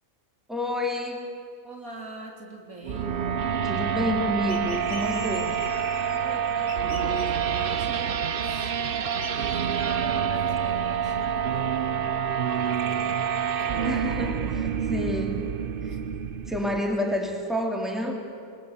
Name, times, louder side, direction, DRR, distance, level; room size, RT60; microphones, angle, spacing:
voice 1, 0.5-1.2 3.6-5.6 13.8-15.4 15.8-16.0 16.5-18.3, left 1 dB, ahead, 1 dB, 2.9 m, -29 dB
voice 2, 1.6-3.3 6.1-8.7 9.1-12.1 12.6-14.3 15.9-16.0, right 2 dB, 85° right, 0 dB, 3.6 m, -42 dB
sound 1, 2.8-16.8, right 7 dB, 50° right, 0.8 m, -27 dB
sound 2, 4.5-6.3 6.7-7.8 9.2-9.3, left 2 dB, 55° left, 3.9 m, -44 dB
27.0 x 21.0 x 8.2 m, 2.4 s
omnidirectional pair, 1.4 m